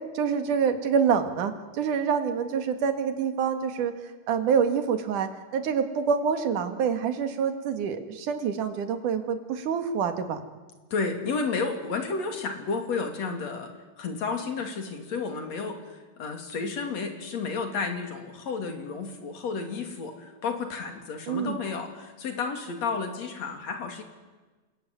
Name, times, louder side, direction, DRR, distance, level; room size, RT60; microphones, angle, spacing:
voice 1, 0.1-3.9 4.3-10.4 21.3-21.6, right 6 dB, 70° right, 7 dB, 3.4 m, -26 dB
voice 2, 10.9-13.7 14.0-24.0, left 4 dB, 55° left, 5 dB, 3.9 m, -32 dB
27.5 x 21.0 x 9.5 m, 1.3 s
omnidirectional pair, 3.8 m